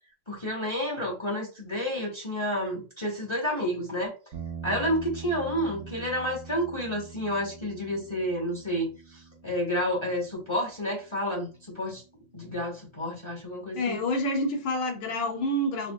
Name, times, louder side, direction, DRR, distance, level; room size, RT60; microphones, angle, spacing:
voice 1, 0.3-4.1 4.6-12.0 12.3-14.0, equal, 25° left, 0.6 m, -30 dB
sound 1, 4.3-12.7, right 7 dB, 60° right, 1.1 m, -44 dB
voice 2, 13.7-15.9, left 1 dB, 85° left, 1.9 m, -28 dB
5.6 x 2.3 x 2.2 m
omnidirectional pair, 2.2 m